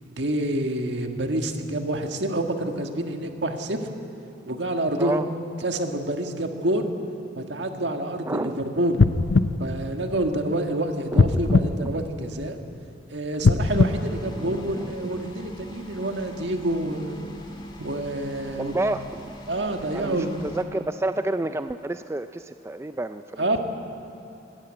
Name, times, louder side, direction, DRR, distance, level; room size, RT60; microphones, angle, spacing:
voice 1, 0.1-3.8 4.4-5.2 5.6-6.9 7.4-9.0 9.6-12.6 13.1-17.2 17.8-18.7 19.5-20.4 23.4-23.6, right 1 dB, 70° right, 4 dB, 1.7 m, -27 dB
voice 2, 8.3-8.7 11.1-11.4 11.7-11.9 14.4-15.0 18.6-19.3 19.9-23.6, right 2 dB, 15° right, 9 dB, 0.4 m, -30 dB
sound 1, 8.9-10.6 11.1-12.7 13.3-15.0 15.6-15.7, left 3 dB, 75° left, 0.6 m, -22 dB
sound 2, 13.6-20.6, right 1 dB, 25° left, 2.0 m, -42 dB
20.0 x 14.5 x 8.9 m, 2.9 s
head